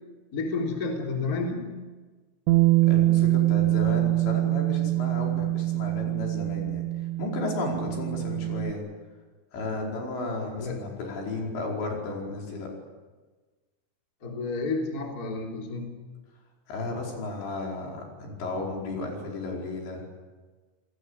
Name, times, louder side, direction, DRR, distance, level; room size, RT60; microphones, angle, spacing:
voice 1, 0.3-1.7 10.5-10.8 14.2-15.9, left 3 dB, 20° left, 1 dB, 3.2 m, -30 dB
Bass guitar, 2.5-8.7, right 17 dB, 80° right, 3.4 m, -24 dB
voice 2, 2.9-6.8 7.2-8.8 9.5-12.7 16.7-20.1, left 2 dB, 70° left, 0 dB, 7.1 m, -33 dB
28.0 x 20.5 x 8.2 m, 1.3 s
omnidirectional pair, 5.3 m